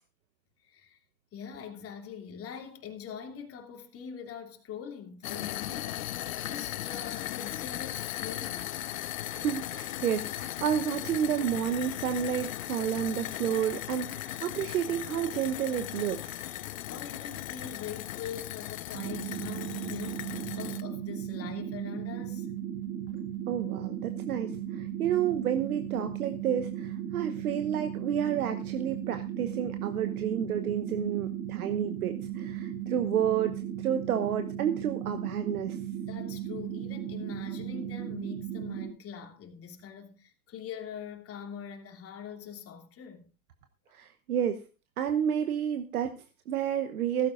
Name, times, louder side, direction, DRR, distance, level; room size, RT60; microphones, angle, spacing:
voice 1, 0.6-1.0 1.3-6.1 6.4-8.7 16.9-22.5 36.0-43.2, left 7 dB, 30° left, 2.9 m, -43 dB
sound 1, 5.2-20.8, left 14 dB, 65° left, 0.9 m, -37 dB
voice 2, 9.3-16.5 23.5-35.8 43.9-44.6 45.0-47.3, right 9 dB, 80° right, 1.1 m, -30 dB
sound 2, 18.9-38.9, right 10 dB, 60° right, 3.2 m, -36 dB
16.0 x 14.5 x 2.6 m
hypercardioid pair, 105°, 44 cm